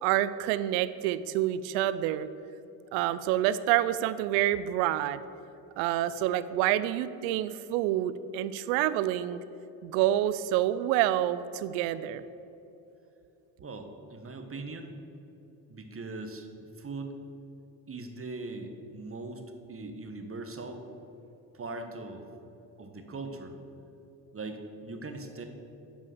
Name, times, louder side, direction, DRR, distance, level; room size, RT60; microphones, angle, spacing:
voice 1, 0.0-2.3 2.9-5.2 5.8-9.4 9.8-12.2, right 13 dB, 80° right, 15 dB, 0.6 m, -27 dB
voice 2, 13.6-14.9 15.7-16.5 16.8-17.2 17.9-19.4 19.7-20.8 21.5-22.2 22.8-23.5 24.3-25.5, right 3 dB, 30° right, 5 dB, 1.3 m, -40 dB
10.0 x 5.5 x 6.4 m, 2.9 s
hypercardioid pair, 65°, 46 cm